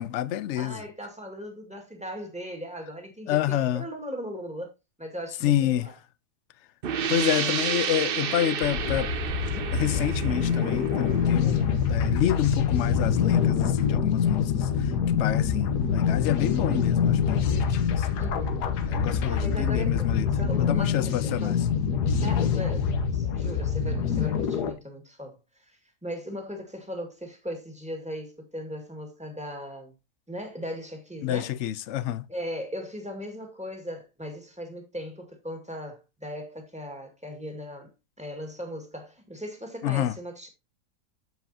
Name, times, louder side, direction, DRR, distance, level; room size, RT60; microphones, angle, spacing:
voice 1, 0.0-0.8 3.3-3.8 5.4-5.9 7.1-9.1 9.7-11.5 11.9-14.9 15.2-18.2 18.9-20.3 20.6-21.6 31.2-32.3 39.8-40.1, left 12 dB, 70° left, 0.7 m, -28 dB
voice 2, 0.6-4.7 5.0-6.0 7.2-7.6 11.4-11.8 18.2-18.7 19.1-21.6 22.2-29.9 30.3-31.6 32.3-37.9 38.2-40.5, equal, 5° right, 2.0 m, -38 dB
sound 1, 6.8-12.3, right 8 dB, 55° right, 0.6 m, -31 dB
sound 2, 8.6-20.8, equal, 30° right, 2.1 m, -40 dB
sound 3, 8.8-24.7, left 7 dB, 90° left, 1.5 m, -25 dB
8.1 x 7.4 x 2.7 m
omnidirectional pair, 1.7 m